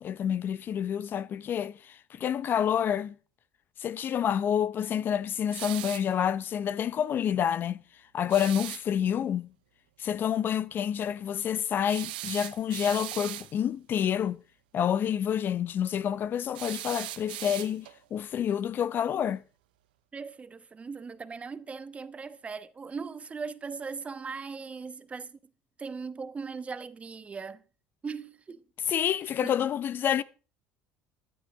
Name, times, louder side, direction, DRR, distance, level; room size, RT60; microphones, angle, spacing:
voice 1, 0.0-3.1 3.8-7.8 8.1-9.5 10.0-14.4 14.7-19.4 28.9-30.2, left 9 dB, 45° left, 0.7 m, -28 dB
sound 1, 5.5-6.1 8.3-8.9 11.9-13.5 16.5-18.0, right 17 dB, 85° right, 0.5 m, -38 dB
voice 2, 20.1-25.4 25.8-27.6 28.0-28.6 29.4-29.5, right 5 dB, 25° right, 1.1 m, -39 dB
14.5 x 12.0 x 3.6 m
hypercardioid pair, 80°, 5 cm